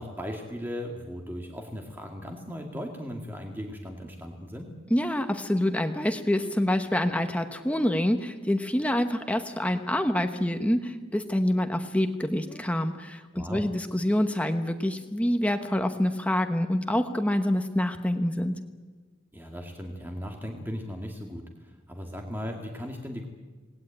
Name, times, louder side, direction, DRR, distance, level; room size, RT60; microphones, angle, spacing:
voice 1, 0.0-4.7 13.3-13.6 19.3-23.3, equal, 10° right, 2 dB, 2.2 m, -37 dB
voice 2, 4.9-18.5, left 1 dB, 5° left, 6 dB, 1.1 m, -26 dB
27.0 x 19.5 x 8.9 m, 1.4 s
head